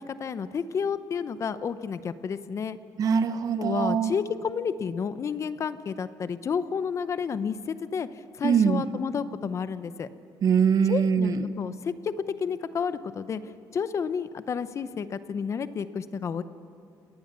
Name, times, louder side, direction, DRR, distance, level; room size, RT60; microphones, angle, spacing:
voice 1, 0.0-2.8 3.6-10.1 10.9-12.1 12.4-16.4, left 6 dB, 40° left, 13 dB, 0.8 m, -31 dB
voice 2, 3.0-4.1 8.4-8.8 10.4-11.4, right 7 dB, 50° right, 11 dB, 1.1 m, -23 dB
29.0 x 19.0 x 6.9 m, 2.5 s
cardioid pair, 125°, 8 cm